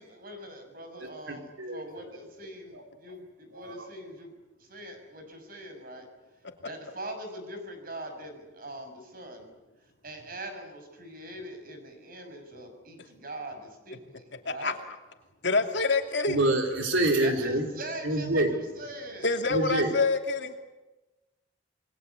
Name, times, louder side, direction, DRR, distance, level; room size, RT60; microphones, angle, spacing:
voice 1, 0.0-4.3 4.6-6.1 6.6-9.5 10.0-14.8 17.2-19.4, right 1 dB, 50° right, 6 dB, 6.1 m, -42 dB
voice 2, 1.0-2.1 2.7-2.8 3.5-3.9 16.3-17.7 18.0-18.5 19.5-19.9, right 1 dB, 85° right, 3 dB, 4.2 m, -27 dB
voice 3, 14.4-14.9 15.4-16.4 19.2-20.5, left 3 dB, 65° left, 4 dB, 2.8 m, -26 dB
28.0 x 21.5 x 8.5 m, 1.1 s
head